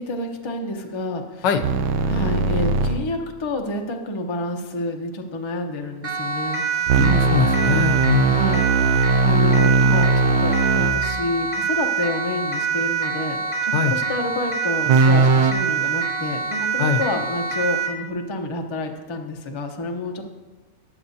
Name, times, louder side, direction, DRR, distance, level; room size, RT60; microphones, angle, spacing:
voice 1, 0.0-1.4 2.1-6.9 8.3-8.6 9.2-20.2, left 2 dB, 30° left, 3 dB, 0.5 m, -29 dB
sound 1, 1.6-3.0 6.9-11.0 14.9-15.5, right 4 dB, 80° right, 1.3 m, -19 dB
Siren, 6.0-18.0, right 6 dB, 30° right, 0.7 m, -25 dB
voice 2, 6.9-8.4 13.7-14.0 16.8-17.0, left 7 dB, 90° left, 7 dB, 1.4 m, -22 dB
14.5 x 9.9 x 2.7 m, 1.2 s
omnidirectional pair, 1.9 m